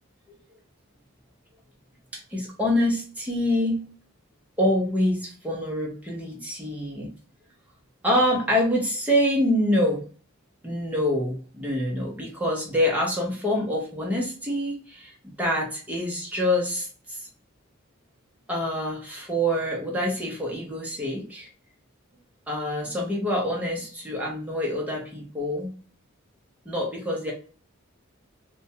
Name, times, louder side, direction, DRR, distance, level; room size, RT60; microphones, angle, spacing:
voice 1, 2.1-3.8 4.6-7.1 8.0-10.0 10.6-17.3 18.5-21.5 22.5-25.7 26.7-27.3, left 1 dB, 5° right, -2 dB, 0.6 m, -26 dB
2.4 x 2.1 x 2.7 m, 0.40 s
head